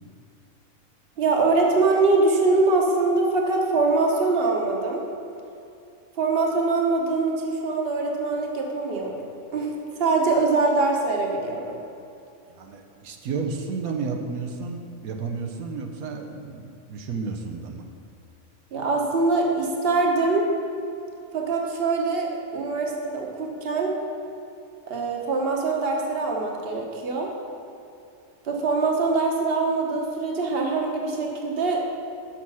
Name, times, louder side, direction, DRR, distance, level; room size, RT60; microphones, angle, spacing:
voice 1, 1.2-5.0 6.2-9.1 9.5-9.7 10.0-11.8 18.7-20.5 21.3-23.9 24.9-27.3 28.4-31.8, right 3 dB, 45° right, 0 dB, 1.2 m, -23 dB
voice 2, 12.5-17.9, right 4 dB, 90° right, 3 dB, 1.2 m, -32 dB
7.2 x 6.1 x 5.5 m, 2.6 s
omnidirectional pair, 1.4 m